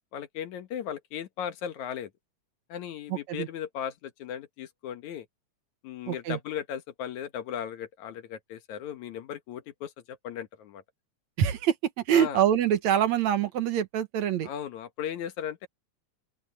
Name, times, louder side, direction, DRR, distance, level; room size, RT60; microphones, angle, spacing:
voice 1, 0.1-2.1 2.7-5.3 5.8-10.8 12.1-12.4 14.4-15.7, left 9 dB, 80° left, 2.7 m, -37 dB
voice 2, 3.1-3.5 6.1-6.4 11.4-14.5, right 10 dB, 75° right, 2.5 m, -25 dB
open air
omnidirectional pair, 3.3 m